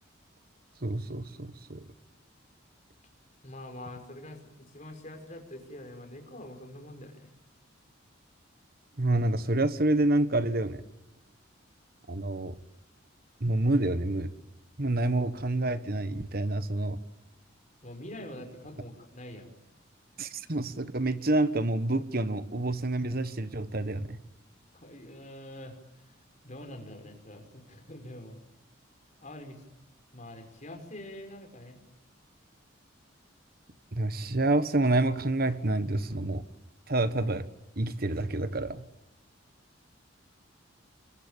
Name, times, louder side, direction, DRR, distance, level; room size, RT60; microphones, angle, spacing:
voice 1, 0.8-1.9 9.0-10.8 12.1-12.5 13.4-14.3 14.8-17.0 20.2-24.2 33.9-36.4 36.9-37.5 37.8-38.8, right 2 dB, 50° right, 12 dB, 1.4 m, -28 dB
voice 2, 3.4-7.3 17.8-19.5 24.7-25.8 26.4-28.4 29.2-29.6 30.1-31.8, left 1 dB, 35° left, 5 dB, 5.4 m, -45 dB
28.0 x 22.5 x 9.0 m, 0.91 s
head